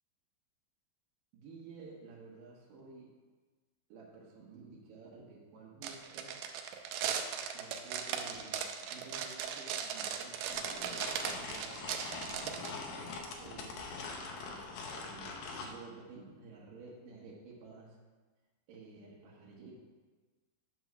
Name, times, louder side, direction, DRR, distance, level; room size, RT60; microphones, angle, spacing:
voice 1, 1.3-3.1 3.9-6.3 7.5-8.7 8.9-14.0 14.5-14.6 14.9-15.3 15.6-18.0 18.7-19.7, right 4 dB, 65° right, -5 dB, 2.8 m, -52 dB
sound 1, 5.8-12.7, right 8 dB, 85° right, 2.6 m, -38 dB
sound 2, 10.5-15.8, left 4 dB, 70° left, 2.3 m, -43 dB
10.5 x 3.7 x 6.1 m, 1.3 s
omnidirectional pair, 4.4 m